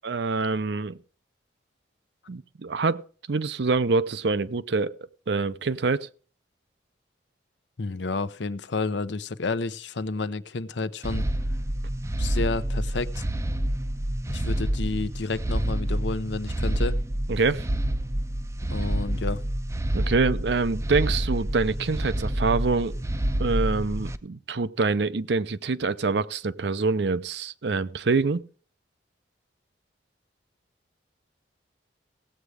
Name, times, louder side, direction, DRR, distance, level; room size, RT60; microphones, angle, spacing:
voice 1, 0.0-1.0 2.3-5.0 5.3-6.1 17.3-17.7 19.9-23.0 23.4-28.4, right 4 dB, 70° right, 0.6 m, -25 dB
voice 2, 7.8-11.3 12.2-13.2 14.3-17.0 18.7-19.4, left 3 dB, 75° left, 0.7 m, -30 dB
sound 1, 11.0-24.2, right 1 dB, 15° right, 0.5 m, -28 dB
16.0 x 8.1 x 4.9 m
head